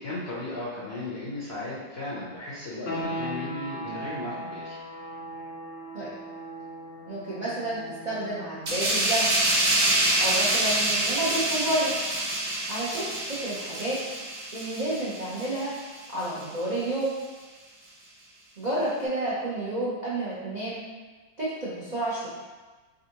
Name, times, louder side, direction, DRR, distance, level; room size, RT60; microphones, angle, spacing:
voice 1, 0.0-4.8, left 2 dB, 65° left, -7 dB, 0.6 m, -35 dB
sound 1, 2.9-13.4, equal, 85° left, 1.4 m, -40 dB
voice 2, 7.1-9.3 10.2-11.9 12.7-14.0 14.5-15.7 16.1-17.1 18.6-20.8 21.4-22.3, right 1 dB, 90° right, -9 dB, 0.3 m, -30 dB
sound 2, 8.7-15.8 16.2-16.4, right 1 dB, 55° right, 1.3 m, -26 dB
3.9 x 3.6 x 2.8 m, 1.3 s
omnidirectional pair, 2.0 m